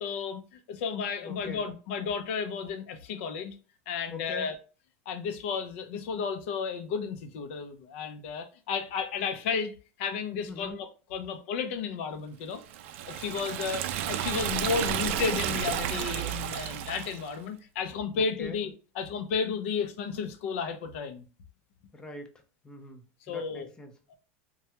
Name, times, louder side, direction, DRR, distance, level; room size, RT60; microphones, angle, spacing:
voice 1, 0.0-3.6 3.9-4.6 5.1-12.6 13.1-21.2 23.3-23.7, left 6 dB, 65° left, 0.6 m, -33 dB
voice 2, 1.2-1.7 4.1-4.5 10.4-10.8 18.1-18.6 21.9-22.3 22.6-24.1, left 2 dB, 10° left, 0.5 m, -43 dB
Liquid, 12.7-17.3, right 10 dB, 70° right, 0.3 m, -32 dB
3.2 x 2.2 x 2.8 m
supercardioid pair, 160°, 7 cm